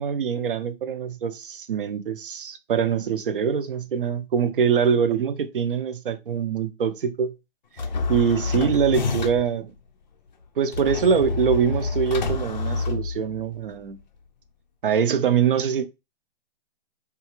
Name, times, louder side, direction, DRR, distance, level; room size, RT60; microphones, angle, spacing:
voice 1, 0.0-7.3 8.1-9.7 10.6-14.0 14.8-15.9, right 7 dB, 55° right, 0.6 m, -24 dB
sound 1, 7.8-9.6 10.7-13.6, left 4 dB, 45° left, 0.4 m, -28 dB
3.7 x 2.5 x 3.0 m
hypercardioid pair, 170°, 32 cm